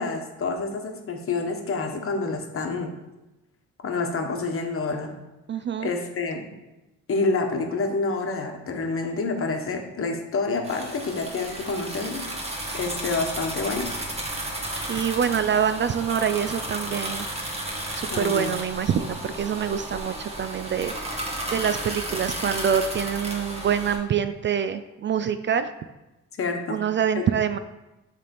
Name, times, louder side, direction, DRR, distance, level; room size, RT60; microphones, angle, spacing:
voice 1, 0.0-2.9 3.8-5.1 5.8-6.5 7.1-12.2 12.7-13.9 18.1-18.6 26.4-26.8 27.1-27.2, left 3 dB, 45° left, 3 dB, 1.2 m, -28 dB
voice 2, 5.5-5.9 14.9-17.3 17.9-20.9 21.5-25.7 26.7-27.6, right 8 dB, 40° right, 11 dB, 0.4 m, -25 dB
sound 1, 10.6-24.0, right 1 dB, 20° right, 1.6 m, -33 dB
6.5 x 3.5 x 5.3 m, 1.0 s
cardioid pair, 90°, 30 cm